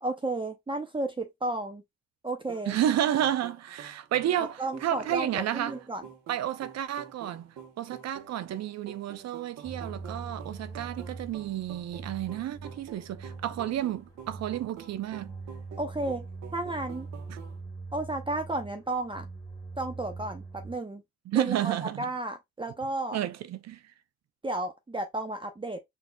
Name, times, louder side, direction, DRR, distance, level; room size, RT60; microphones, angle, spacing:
voice 1, 0.0-1.8 2.2-2.8 4.4-6.0 15.8-16.3 16.5-17.1 17.9-19.3 19.8-21.0 21.3-23.2 24.4-25.8, right 2 dB, 15° right, 0.7 m, -33 dB
sound 1, 2.5-17.6, right 8 dB, 80° right, 1.0 m, -48 dB
voice 2, 2.7-5.8 6.3-7.5 7.8-15.3 17.3-17.4 21.3-22.1 23.1-23.8, right 11 dB, 60° right, 0.5 m, -31 dB
sound 2, 9.6-20.8, right 4 dB, 15° left, 1.9 m, -43 dB
4.4 x 2.8 x 2.2 m
cardioid pair, 90°, 30 cm